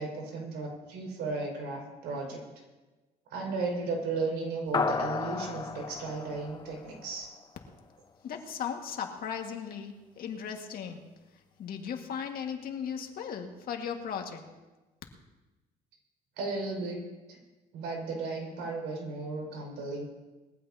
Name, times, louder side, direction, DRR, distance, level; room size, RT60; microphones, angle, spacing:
voice 1, 0.0-2.4 3.3-7.3 16.4-17.0 17.3-17.4 17.7-20.0, right 3 dB, 85° right, 0 dB, 5.5 m, -35 dB
sound 1, 4.7-7.4, left 4 dB, 25° left, 1.0 m, -33 dB
voice 2, 8.2-11.0 11.6-14.4, left 7 dB, 60° left, 3 dB, 1.9 m, -37 dB
21.0 x 15.5 x 2.9 m, 1.2 s
cardioid pair, 110°, 17 cm